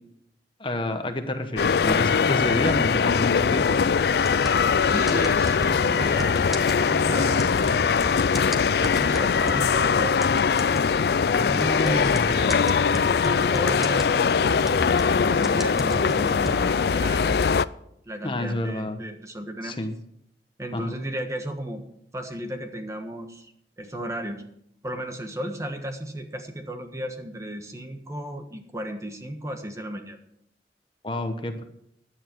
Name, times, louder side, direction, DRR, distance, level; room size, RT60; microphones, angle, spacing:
voice 1, 0.6-3.8 11.3-12.4 18.2-19.0 19.6-20.0 20.7-20.9 31.0-31.6, left 1 dB, 30° left, 6 dB, 1.1 m, -29 dB
sound 1, 1.6-17.7, left 6 dB, 65° left, 0.4 m, -22 dB
sound 2, 4.2-9.8 10.2-16.9, equal, ahead, 1.3 m, -36 dB
voice 2, 4.8-7.9 8.8-10.2 11.5-12.9 13.2-17.5 18.0-19.8 20.6-21.8 22.1-23.5 23.8-24.4 24.8-30.2, equal, 15° right, 5 dB, 1.4 m, -34 dB
16.0 x 10.5 x 4.6 m, 0.74 s
head